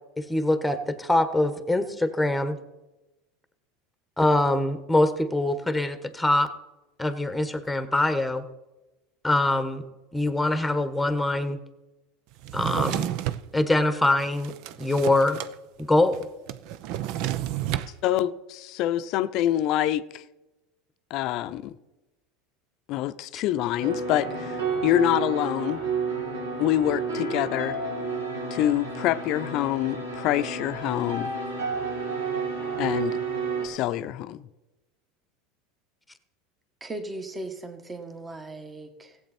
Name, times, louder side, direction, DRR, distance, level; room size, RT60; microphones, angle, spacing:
voice 1, 0.2-2.6 4.2-6.5 7.0-8.4 9.2-9.8 10.1-11.6 12.5-13.1 13.5-15.4 15.9-16.2 23.3-23.4, left 2 dB, 5° left, 1.3 m, -24 dB
Drawer open or close, 12.4-13.5 14.0-15.5 15.8-15.9 16.1-17.9, right 12 dB, 60° right, 0.6 m, -30 dB
voice 2, 18.0-20.2 21.1-21.7 22.9-25.8 26.6-27.8 28.5-31.3 32.8-33.2 33.6-34.4, left 13 dB, 55° left, 0.6 m, -26 dB
sound 1, 23.8-33.7, right 4 dB, 90° right, 2.6 m, -31 dB
voice 3, 36.8-39.2, right 2 dB, 20° right, 1.7 m, -38 dB
16.0 x 8.0 x 4.4 m
hypercardioid pair, 90°, 0 cm